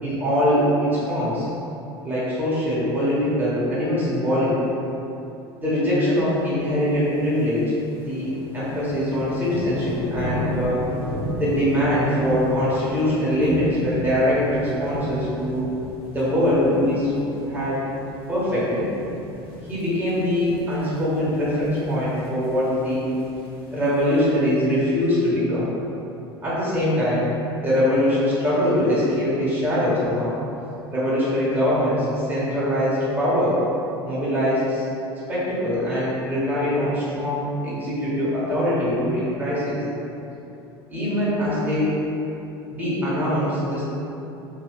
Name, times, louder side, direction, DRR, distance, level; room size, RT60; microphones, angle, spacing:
voice 1, 0.0-1.5 2.0-4.6 5.5-7.6 8.0-10.9 11.4-15.7 16.1-17.1 17.5-17.8 18.3-18.9 19.7-23.1 23.7-25.7 26.4-27.2 27.6-30.4 30.9-33.6 34.0-34.8 35.3-39.8 40.9-42.0 42.7-43.8, equal, 15° right, -10 dB, 1.4 m, -22 dB
sound 1, 6.9-24.4, left 1 dB, 40° left, 1.1 m, -36 dB
3.1 x 2.6 x 3.1 m, 2.9 s
figure-of-eight pair, 75°, 13 cm